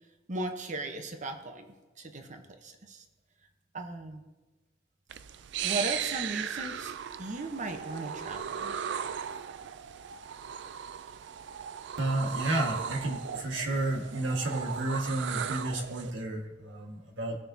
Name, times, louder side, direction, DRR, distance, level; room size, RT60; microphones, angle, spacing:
voice 1, 0.3-3.0 3.7-4.2 5.6-8.8, right 2 dB, 40° right, 5 dB, 1.0 m, -37 dB
sound 1, 5.1-16.1, right 8 dB, 70° right, 0.4 m, -37 dB
voice 2, 12.0-17.4, right 2 dB, 85° right, 0 dB, 1.7 m, -31 dB
18.5 x 6.6 x 2.8 m, 1.2 s
head